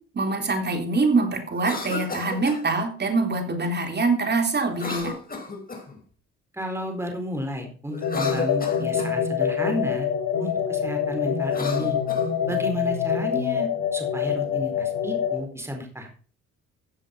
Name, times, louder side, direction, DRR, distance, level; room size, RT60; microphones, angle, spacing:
voice 1, 0.1-5.1, right 3 dB, 35° right, 4 dB, 3.6 m, -24 dB
Cough, 1.5-2.6 4.7-6.0 7.9-9.2 11.4-12.6, left 3 dB, 30° left, 4.5 m, -34 dB
voice 2, 6.5-10.1 10.4-12.0 12.5-16.1, equal, 10° right, 3 dB, 4.4 m, -32 dB
sound 1, 8.0-15.4, left 8 dB, 75° left, 2.9 m, -25 dB
15.0 x 7.5 x 5.7 m, 0.41 s
cardioid pair, 90°, 30 cm